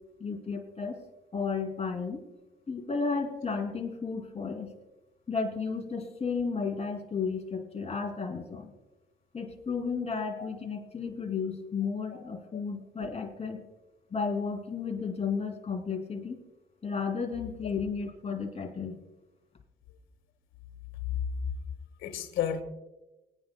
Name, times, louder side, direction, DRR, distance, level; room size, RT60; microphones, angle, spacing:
voice 1, 0.2-1.0 1.3-2.2 2.7-4.7 5.3-8.7 9.3-13.6 14.1-16.4 16.8-19.0, left 5 dB, 30° left, 2 dB, 2.9 m, -33 dB
voice 2, 10.2-10.5 12.1-12.2 21.1-21.3 22.0-22.6, left 9 dB, 85° left, 6 dB, 1.6 m, -32 dB
24.5 x 9.9 x 2.3 m, 1.0 s
cardioid pair, 90°, 20 cm